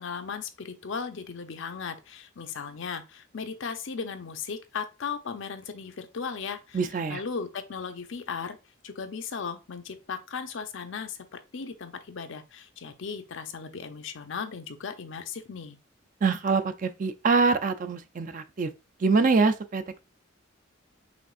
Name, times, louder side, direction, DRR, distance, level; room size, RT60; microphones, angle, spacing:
voice 1, 0.0-6.8 7.1-8.6 8.8-15.8, left 5 dB, 65° left, 0.6 m, -36 dB
voice 2, 6.7-7.2 16.2-18.7 19.0-20.0, right 4 dB, 40° right, 0.3 m, -24 dB
5.1 x 3.4 x 2.4 m
head